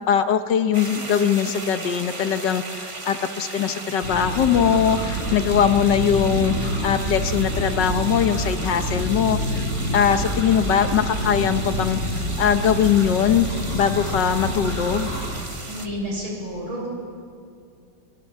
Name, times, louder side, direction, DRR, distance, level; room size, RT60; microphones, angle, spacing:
voice 1, 0.1-9.6 9.9-13.5 13.7-15.2, left 8 dB, 65° left, 10 dB, 1.5 m, -21 dB
sound 1, 0.7-15.9, right 2 dB, 20° right, 0.9 m, -36 dB
sound 2, 4.0-15.2, equal, 35° left, 8.1 m, -27 dB
voice 2, 15.6-16.9, equal, 85° right, -1 dB, 7.0 m, -30 dB
23.0 x 23.0 x 7.4 m, 2.3 s
omnidirectional pair, 2.2 m